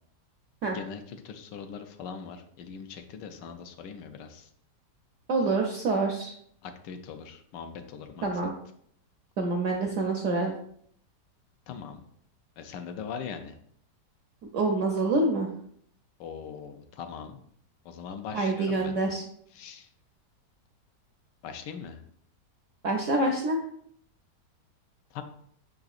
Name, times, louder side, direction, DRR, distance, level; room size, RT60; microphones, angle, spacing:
voice 1, 0.6-4.5 6.6-8.3 11.7-12.0 12.6-13.6 16.2-17.4 17.8-18.9 19.5-19.9 21.4-22.0 25.1-25.2, left 6 dB, 85° left, 7 dB, 1.2 m, -41 dB
voice 2, 5.3-6.3 8.2-8.5 9.4-10.5 14.5-15.5 18.3-19.2 22.8-23.6, right 2 dB, 75° right, 1 dB, 0.7 m, -26 dB
5.9 x 3.8 x 2.4 m, 0.65 s
omnidirectional pair, 1.9 m